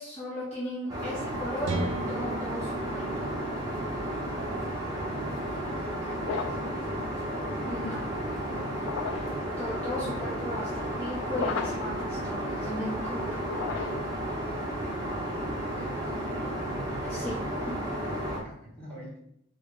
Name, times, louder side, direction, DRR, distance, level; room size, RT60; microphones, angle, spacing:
voice 1, 0.0-3.2 7.6-8.0 9.6-13.4 17.1-17.4, left 1 dB, 30° left, -8 dB, 0.8 m, -36 dB
Aircraft, 0.9-18.4, right 1 dB, 20° right, 0.7 m, -33 dB
sound 1, 1.6-5.4, right 2 dB, 70° right, 0.5 m, -37 dB
voice 2, 5.5-6.7 8.5-9.0 9.4-9.5 15.6-16.1 16.9-19.2, right 1 dB, 10° left, -8 dB, 1.4 m, -47 dB
sound 2, 6.2-6.8 8.8-9.4 11.3-12.0 13.4-14.2, left 5 dB, 70° left, 0.3 m, -34 dB
3.6 x 2.2 x 3.6 m, 0.73 s
head